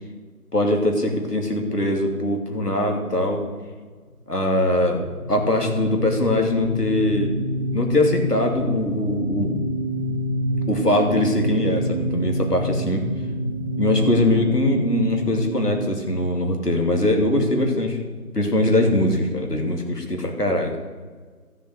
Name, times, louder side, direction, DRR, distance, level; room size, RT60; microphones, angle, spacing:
voice 1, 0.5-3.4 4.3-5.0 5.3-7.3 7.7-9.6 10.7-13.0 13.8-18.0 18.3-20.8, left 1 dB, 80° left, 2 dB, 3.0 m, -22 dB
sound 1, 4.9-17.1, right 1 dB, 60° left, 3.6 m, -28 dB
13.5 x 7.4 x 8.0 m, 1.5 s
figure-of-eight pair, 180°, 47 cm